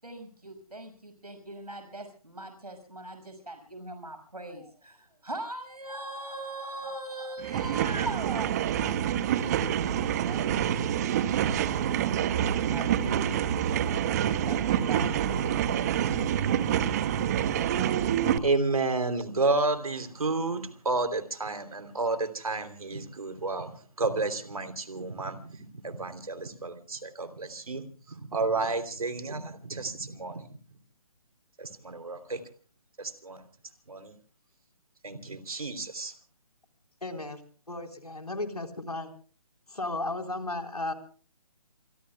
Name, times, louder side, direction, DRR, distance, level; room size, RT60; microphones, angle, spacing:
voice 1, 0.0-9.8 10.2-11.2 12.7-13.4 13.7-16.5, right 1 dB, 85° right, 7 dB, 6.1 m, -41 dB
sound 1, 7.4-18.4, right 9 dB, 25° right, 1.2 m, -27 dB
voice 2, 18.2-30.6 31.6-32.4 33.0-33.4 33.9-34.1 35.0-36.1, right 3 dB, 70° right, 9 dB, 3.2 m, -31 dB
voice 3, 37.0-37.4 37.7-39.1 39.7-40.9, left 2 dB, 85° left, 5 dB, 4.1 m, -34 dB
27.5 x 23.0 x 2.3 m, 0.42 s
figure-of-eight pair, 145°, 19 cm